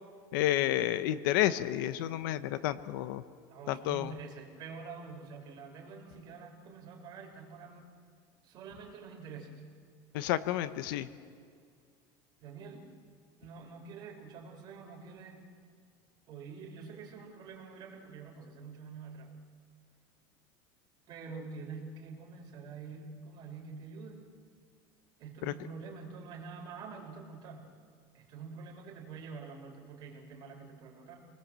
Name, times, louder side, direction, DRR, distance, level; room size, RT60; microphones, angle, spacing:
voice 1, 0.3-3.2 3.7-4.1 10.1-11.1, left 13 dB, 75° left, 13 dB, 1.0 m, -30 dB
voice 2, 3.5-7.9 8.4-9.6 12.4-12.9 13.4-15.4 16.3-19.3 21.1-24.2 25.2-27.6 28.1-31.3, right 5 dB, 40° right, 1 dB, 4.6 m, -46 dB
27.5 x 19.5 x 7.6 m, 2.2 s
cardioid pair, 160°, 11 cm